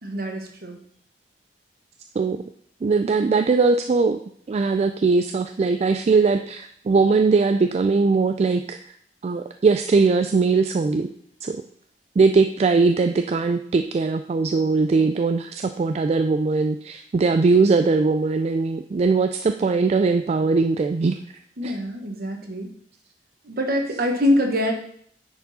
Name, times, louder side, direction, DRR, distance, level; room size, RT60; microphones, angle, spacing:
voice 1, 0.0-0.8 21.6-22.7 23.4-24.7, left 1 dB, 60° right, 3 dB, 1.3 m, -24 dB
voice 2, 2.2-2.5 2.8-4.2 4.5-8.8 9.2-11.1 11.4-11.6 12.2-21.2 21.6-21.7, right 4 dB, 35° right, 7 dB, 0.3 m, -20 dB
9.7 x 4.6 x 4.1 m, 0.64 s
head